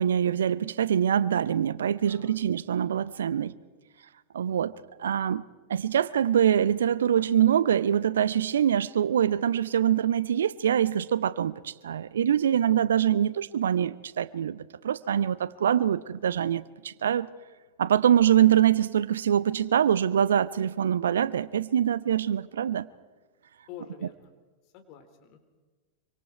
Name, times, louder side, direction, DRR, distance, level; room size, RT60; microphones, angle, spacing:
voice 1, 0.0-3.5 4.3-4.7 5.0-5.4 5.7-17.3 17.8-22.9, right 9 dB, 65° right, 18 dB, 0.7 m, -24 dB
voice 2, 2.1-2.5 23.7-24.3 24.7-25.4, left 9 dB, 40° left, 6 dB, 3.9 m, -47 dB
26.5 x 25.0 x 4.7 m, 1.3 s
figure-of-eight pair, 90°, 0 cm